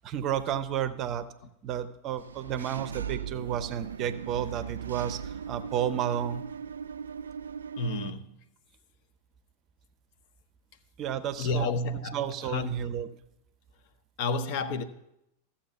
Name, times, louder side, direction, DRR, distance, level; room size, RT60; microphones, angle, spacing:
voice 1, 0.0-1.3 1.6-6.5 11.0-11.6 12.1-13.1, right 9 dB, 35° right, 0.7 m, -32 dB
Engine / Mechanisms, 2.2-8.1, right 7 dB, 70° right, 0.3 m, -39 dB
voice 2, 7.8-8.3 11.4-12.7 14.2-14.8, left 2 dB, 45° left, 0.8 m, -30 dB
14.0 x 7.2 x 5.7 m
figure-of-eight pair, 90°, 0 cm